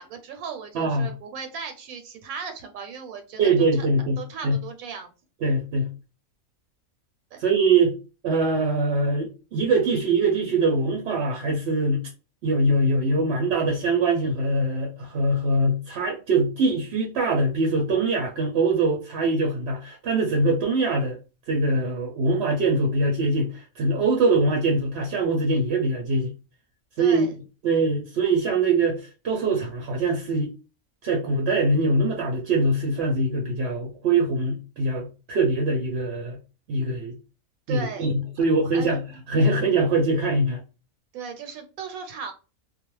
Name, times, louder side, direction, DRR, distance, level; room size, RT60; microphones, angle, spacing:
voice 1, 0.0-5.1 7.3-7.4 27.0-27.3 37.7-38.1 38.7-38.9 41.1-42.3, right 6 dB, 85° right, 1.0 m, -37 dB
voice 2, 0.7-1.1 3.4-4.6 5.4-5.9 7.4-7.9 8.2-12.1 12.4-21.2 21.5-26.3 27.0-27.3 27.6-30.5 31.0-36.4 36.7-37.2 37.7-40.6, right 2 dB, 60° right, 0.7 m, -23 dB
2.3 x 2.0 x 3.1 m
omnidirectional pair, 1.4 m